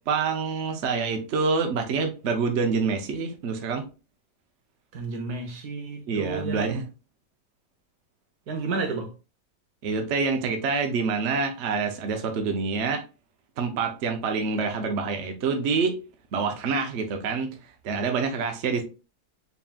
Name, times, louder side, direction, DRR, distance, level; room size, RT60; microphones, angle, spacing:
voice 1, 0.1-3.9 6.1-6.9 9.8-13.0 13.6-16.0 16.3-17.6 17.8-18.8, right 4 dB, 80° right, 0.6 m, -26 dB
voice 2, 4.9-6.8 8.5-9.1, right 4 dB, 60° right, 1.3 m, -31 dB
4.1 x 3.5 x 2.3 m
omnidirectional pair, 2.2 m